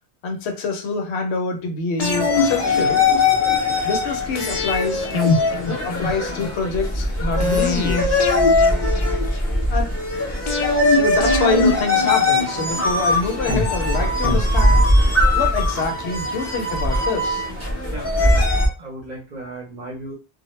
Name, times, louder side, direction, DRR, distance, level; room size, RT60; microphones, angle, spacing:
voice 1, 0.2-3.1 3.8-5.1 5.7-8.1 9.7-9.9 10.7-14.8 15.3-17.5, left 4 dB, 75° left, 0.8 m, -26 dB
sound 1, 2.0-3.6 4.4-6.5 7.4-9.6 10.5-12.8 13.5-15.1 15.4-15.5, left 3 dB, 60° left, 0.4 m, -24 dB
sound 2, 2.0-18.7, left 2 dB, 15° left, 0.7 m, -20 dB
voice 2, 17.9-20.1, right 1 dB, 50° right, 0.6 m, -36 dB
2.1 x 2.0 x 3.0 m
omnidirectional pair, 1.1 m